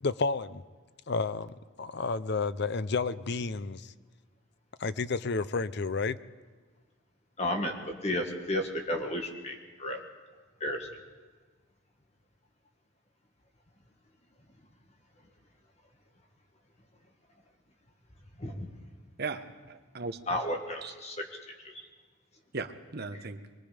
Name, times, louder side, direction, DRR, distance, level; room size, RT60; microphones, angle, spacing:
voice 1, 0.0-0.6 1.1-3.9 4.8-6.2, left 4 dB, 55° left, 15 dB, 0.6 m, -31 dB
voice 2, 7.4-10.0 10.6-10.9 18.4-18.7 20.3-21.2 21.6-21.9, left 1 dB, 30° left, 3 dB, 1.8 m, -33 dB
voice 3, 19.2-20.4 20.8-20.9 22.5-23.4, right 4 dB, 50° right, 8 dB, 1.1 m, -38 dB
23.5 x 21.5 x 5.1 m, 1.4 s
head